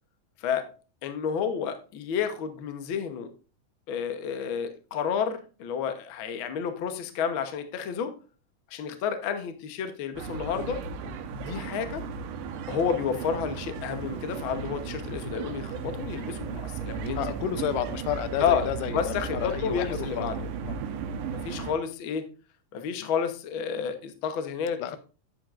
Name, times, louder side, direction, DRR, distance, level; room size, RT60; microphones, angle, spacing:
voice 1, 1.0-3.3 3.9-8.1 8.7-12.0 12.7-17.2 18.4-18.7 18.9-20.4 21.4-22.3 22.7-25.0, left 7 dB, 65° left, 8 dB, 1.3 m, -30 dB
sound 1, 10.2-21.7, right 5 dB, 90° right, 2.4 m, -35 dB
voice 2, 17.2-20.3 20.6-20.8 24.8-25.0, left 9 dB, 90° left, 13 dB, 2.3 m, -31 dB
10.5 x 7.8 x 2.5 m, 0.36 s
omnidirectional pair, 3.6 m